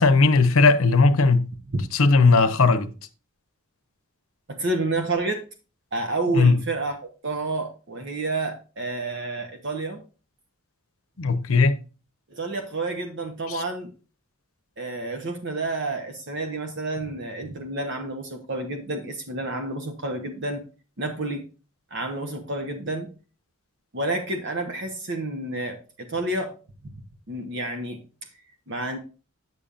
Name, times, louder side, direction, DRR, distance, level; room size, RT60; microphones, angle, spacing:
voice 1, 0.0-1.5 1.9-2.9 6.3-6.6 11.2-11.7 13.5-13.6, left 3 dB, 70° left, 0.8 m, -17 dB
voice 2, 4.5-5.5 5.9-7.0 7.2-10.0 12.3-13.9 14.8-20.6 21.0-21.4 21.9-23.1 23.9-26.5 26.8-26.9 27.3-28.0 28.7-29.0, right 2 dB, 55° right, 1.0 m, -29 dB
9.5 x 6.9 x 2.5 m
head